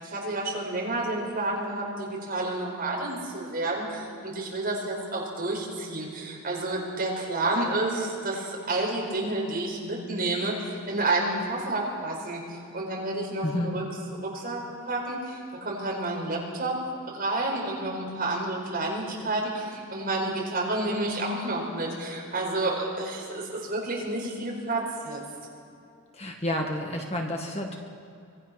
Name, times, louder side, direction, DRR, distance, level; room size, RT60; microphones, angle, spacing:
voice 1, 0.0-13.8 14.2-16.8 17.1-25.2, right 2 dB, 40° right, -2 dB, 4.9 m, -30 dB
voice 2, 13.4-13.8 26.1-27.8, left 1 dB, 30° left, 1 dB, 1.7 m, -30 dB
25.0 x 19.5 x 6.0 m, 2.5 s
head